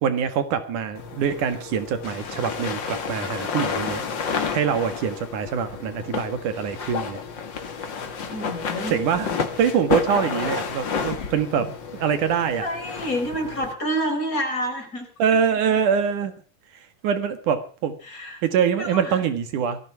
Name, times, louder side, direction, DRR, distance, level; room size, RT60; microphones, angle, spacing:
voice 1, 0.0-4.0 4.5-7.2 8.9-9.3 9.6-12.7 15.2-16.3 17.0-18.0 18.4-19.8, right 7 dB, 75° right, 10 dB, 3.1 m, -24 dB
sound 1, 0.9-13.7, left 6 dB, 40° left, 2.2 m, -31 dB
voice 2, 8.2-9.0 12.6-15.4 18.0-18.4 18.8-19.2, equal, 25° left, 4 dB, 4.8 m, -29 dB
19.5 x 14.0 x 4.8 m, 0.39 s
omnidirectional pair, 3.6 m